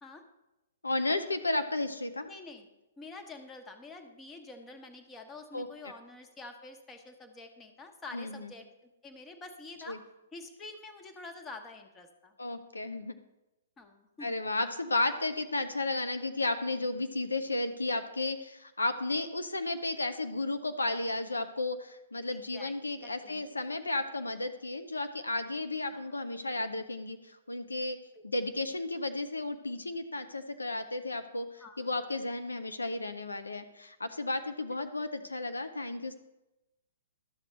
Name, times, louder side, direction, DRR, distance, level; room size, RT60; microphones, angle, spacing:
voice 1, 0.8-2.3 5.5-5.7 8.1-8.5 9.9-10.0 12.4-13.2 14.2-28.0 28.2-36.2, left 2 dB, 85° left, 9 dB, 0.6 m, -33 dB
voice 2, 2.3-2.7 3.0-10.0 10.3-12.4 13.8-14.4 22.3-23.5 25.9-26.2 31.6-31.9, left 3 dB, 15° left, 5 dB, 1.0 m, -48 dB
12.0 x 6.3 x 3.2 m, 0.97 s
figure-of-eight pair, 120°, 0 cm